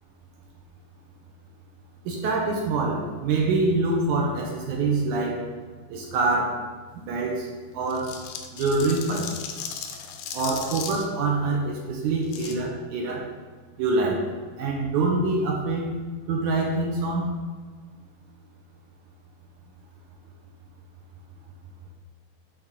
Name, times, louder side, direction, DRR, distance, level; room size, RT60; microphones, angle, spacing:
voice 1, 2.1-5.5 5.9-6.6 7.0-8.2 8.5-9.3 10.3-13.3 13.8-14.3 14.6-15.9 16.3-17.3, right 3 dB, 75° right, -1 dB, 1.9 m, -25 dB
sound 1, 7.9-11.0 12.2-12.6, left 7 dB, 80° left, 2.3 m, -36 dB
10.5 x 3.6 x 3.7 m, 1.5 s
omnidirectional pair, 4.1 m